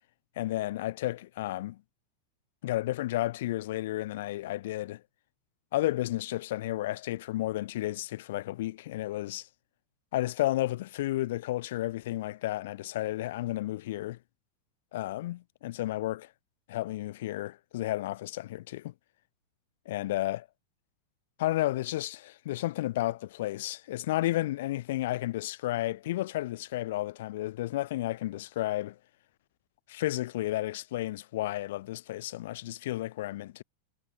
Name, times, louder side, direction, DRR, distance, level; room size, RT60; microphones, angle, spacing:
voice 1, 0.4-1.8 2.6-5.0 5.7-9.5 10.1-14.2 14.9-16.3 16.7-18.9 19.9-20.5 21.4-29.0 29.9-33.6, left 15 dB, 55° left, 2.5 m, -32 dB
figure-of-eight pair, 90°, 0 cm